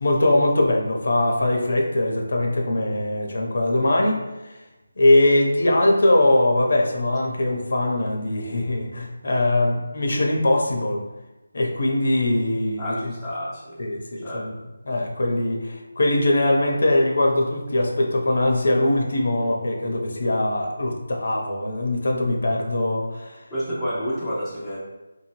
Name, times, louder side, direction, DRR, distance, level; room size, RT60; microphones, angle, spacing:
voice 1, 0.0-4.2 5.0-11.0 11.5-12.9 13.8-14.5 14.9-23.4, left 1 dB, 50° left, 0 dB, 0.7 m, -21 dB
voice 2, 12.8-13.8 14.2-14.5 23.5-24.8, equal, ahead, -16 dB, 0.5 m, -29 dB
4.4 x 2.7 x 3.0 m, 1.1 s
figure-of-eight pair, 175°, 0 cm